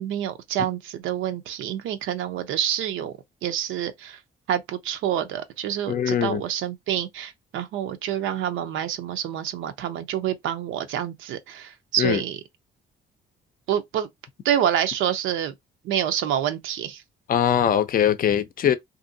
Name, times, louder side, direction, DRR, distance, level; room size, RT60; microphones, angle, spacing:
voice 1, 0.0-3.1 3.4-4.2 4.5-12.4 13.7-14.1 14.4-15.5 15.8-17.0, right 10 dB, 85° right, 0.6 m, -27 dB
voice 2, 5.9-6.4 12.0-12.2 17.3-18.7, left 9 dB, 45° left, 0.5 m, -21 dB
2.6 x 2.6 x 2.6 m
cardioid pair, 90°, 20 cm